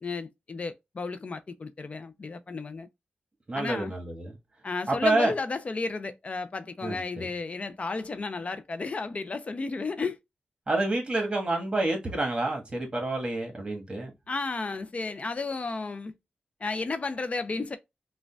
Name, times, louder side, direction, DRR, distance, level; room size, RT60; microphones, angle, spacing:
voice 1, 0.0-2.9 3.5-3.9 4.6-10.2 14.3-16.1 16.6-17.8, left 3 dB, 45° left, 0.4 m, -33 dB
voice 2, 3.5-4.3 4.9-5.3 6.8-7.3 10.7-14.1, right 2 dB, 30° right, 1.3 m, -28 dB
4.9 x 2.2 x 2.3 m
wide cardioid pair, 85°, 3 cm